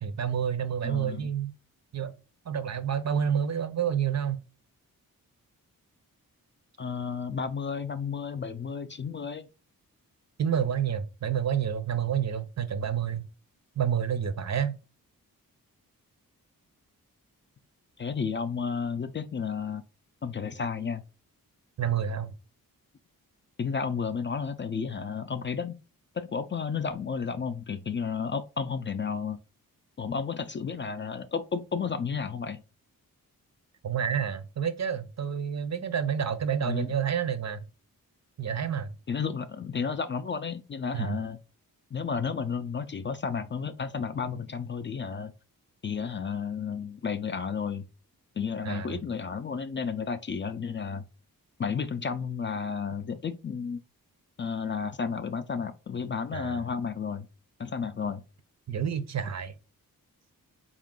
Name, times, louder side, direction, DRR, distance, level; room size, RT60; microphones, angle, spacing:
voice 1, 0.0-1.5 1.9-2.1 2.5-4.4 10.4-13.2 13.8-14.7 21.8-22.3 33.8-37.6 38.4-38.9 40.9-41.2 48.6-49.0 56.3-56.6 58.7-59.5, right 8 dB, 50° right, 0.6 m, -29 dB
voice 2, 0.8-1.3 6.8-9.5 18.0-19.8 20.2-21.0 23.6-25.8 26.1-29.4 30.0-32.6 36.6-36.9 39.1-41.4 41.9-45.3 45.8-47.8 48.4-51.0 51.6-53.8 54.4-57.3 57.6-58.2, left 6 dB, 35° left, 0.4 m, -32 dB
3.7 x 2.4 x 3.7 m
cardioid pair, 60°, 36 cm